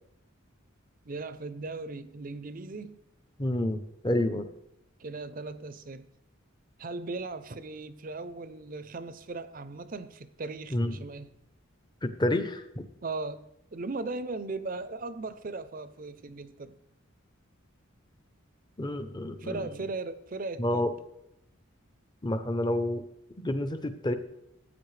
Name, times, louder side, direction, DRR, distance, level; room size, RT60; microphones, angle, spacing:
voice 1, 1.1-3.0 5.0-6.1 6.8-11.3 13.0-16.7 19.4-20.9, right 3 dB, 40° right, 0.6 m, -38 dB
voice 2, 3.4-4.5 10.7-11.0 12.0-12.8 18.8-19.7 20.6-20.9 22.2-23.0 23.4-24.2, left 1 dB, 20° left, 0.7 m, -29 dB
15.0 x 8.8 x 3.3 m
head